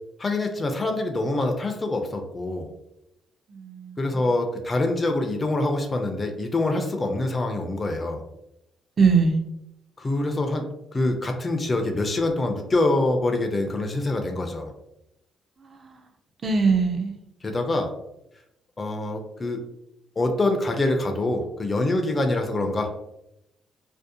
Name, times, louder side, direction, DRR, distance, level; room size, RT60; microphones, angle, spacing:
voice 1, 0.2-2.7 4.0-8.2 10.0-10.6 10.9-14.7 17.4-17.9 18.8-19.6 20.2-23.0, left 2 dB, 30° left, 4 dB, 0.4 m, -25 dB
voice 2, 3.5-4.3 9.0-9.4 15.6-16.0 16.4-17.1, right 5 dB, 40° right, 5 dB, 0.4 m, -22 dB
2.5 x 2.0 x 2.6 m, 0.84 s
cardioid pair, 90°, 0 cm